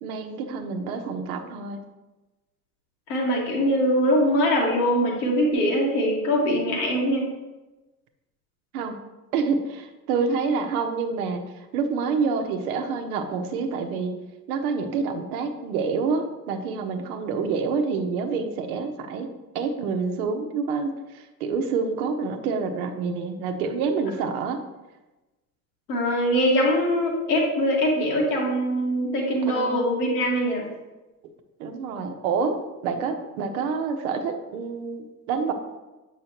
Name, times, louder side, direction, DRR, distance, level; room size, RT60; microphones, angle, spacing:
voice 1, 0.0-1.8 8.7-8.9 9.3-11.4 11.7-14.1 14.5-19.3 19.5-24.6 29.5-29.9 31.6-32.6 32.8-35.5, right 5 dB, 65° right, 6 dB, 0.9 m, -27 dB
voice 2, 3.1-7.3 25.9-30.6, equal, 70° left, -2 dB, 1.9 m, -22 dB
7.5 x 5.6 x 2.9 m, 1.1 s
figure-of-eight pair, 65°, 48 cm